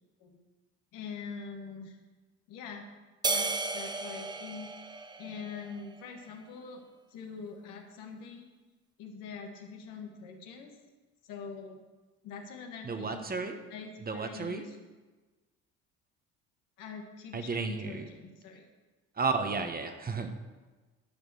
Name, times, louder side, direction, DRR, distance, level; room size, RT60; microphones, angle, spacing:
voice 1, 0.9-2.0 2.5-2.9 3.3-4.7 5.2-6.8 7.1-8.5 9.0-10.7 11.2-11.8 12.2-13.3 13.7-14.7 16.8-18.6, left 5 dB, 80° left, 2 dB, 1.6 m, -44 dB
sound 1, 3.2-5.9, right 3 dB, 15° right, 0.6 m, -34 dB
voice 2, 12.8-13.6 14.0-14.6 17.3-18.1 19.2-20.3, right 4 dB, 30° right, 7 dB, 1.1 m, -33 dB
11.5 x 5.0 x 6.3 m, 1.3 s
supercardioid pair, 75°, 32 cm